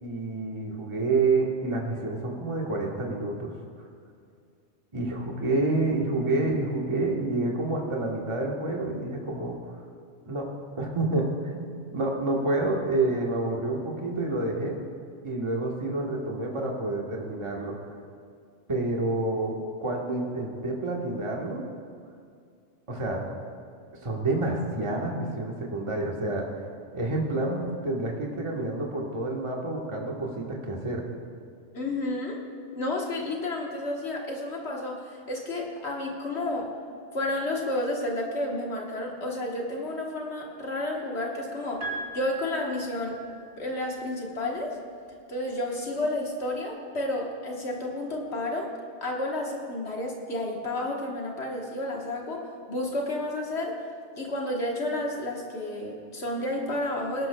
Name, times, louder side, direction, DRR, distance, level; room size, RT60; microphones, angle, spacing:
voice 1, 0.0-3.5 4.9-9.6 10.3-10.5 10.8-14.8 15.2-17.9 18.7-19.5 19.8-21.6 22.9-23.2 24.0-26.5 26.9-31.0, right 2 dB, 30° right, -1 dB, 1.2 m, -28 dB
voice 2, 31.7-32.4 32.7-36.7 37.1-43.2 43.6-44.8 45.3-48.7 49.0-53.8 54.1-57.3, left 1 dB, 70° left, -1 dB, 1.5 m, -31 dB
Piano, 41.8-43.8 45.1-45.2, right 2 dB, 90° right, 2.1 m, -38 dB
19.0 x 11.5 x 2.2 m, 2.3 s
omnidirectional pair, 1.2 m